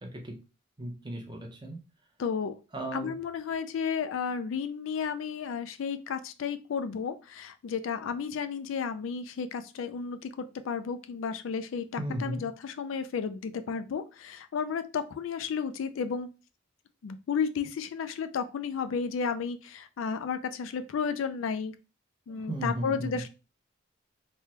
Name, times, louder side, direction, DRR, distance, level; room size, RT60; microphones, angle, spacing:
voice 1, 0.0-0.4 0.8-1.8 2.7-3.1 12.0-12.4 22.3-23.2, right 1 dB, 20° right, 2 dB, 0.7 m, -35 dB
voice 2, 2.2-2.6 2.9-16.3 17.0-21.7 22.3-23.3, left 6 dB, 75° left, 10 dB, 0.3 m, -33 dB
3.3 x 2.2 x 2.8 m, 0.30 s
head